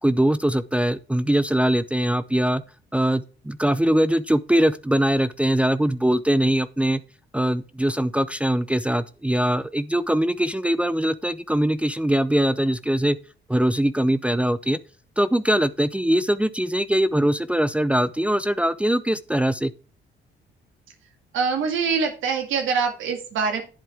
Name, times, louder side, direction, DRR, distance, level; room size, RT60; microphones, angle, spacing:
voice 1, 0.0-2.6 2.9-7.0 7.3-13.2 13.5-14.8 15.2-19.7, right 1 dB, 5° right, 0.6 m, -22 dB
voice 2, 21.3-23.6, right 5 dB, 80° right, 2.2 m, -24 dB
11.0 x 7.6 x 3.5 m
cardioid pair, 90°, 20 cm